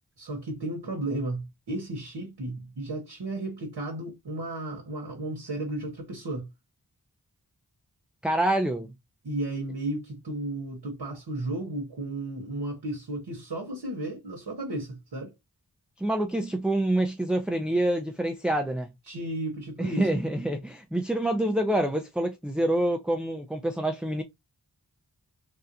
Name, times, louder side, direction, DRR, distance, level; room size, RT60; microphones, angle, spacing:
voice 1, 0.2-6.5 9.2-15.3 19.1-20.1, right 1 dB, 80° right, 1.0 m, -34 dB
voice 2, 8.2-8.9 16.0-18.9 19.8-24.2, right 1 dB, ahead, 0.3 m, -26 dB
3.4 x 2.4 x 2.7 m
wide cardioid pair, 65°, 40 cm